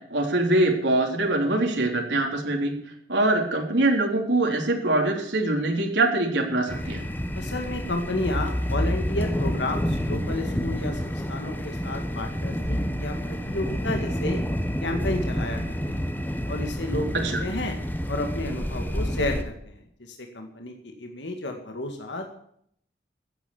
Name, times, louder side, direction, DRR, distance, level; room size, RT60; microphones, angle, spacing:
voice 1, 0.1-2.7 3.1-7.0 17.2-17.3, right 2 dB, 90° right, 1 dB, 3.6 m, -23 dB
sound 1, 6.7-19.4, equal, 10° left, 1.3 m, -29 dB
voice 2, 7.3-14.4 14.8-15.6 15.9-16.0 16.5-17.8 18.1-22.3, left 2 dB, 90° left, 4 dB, 2.1 m, -32 dB
15.0 x 9.1 x 7.2 m, 0.67 s
head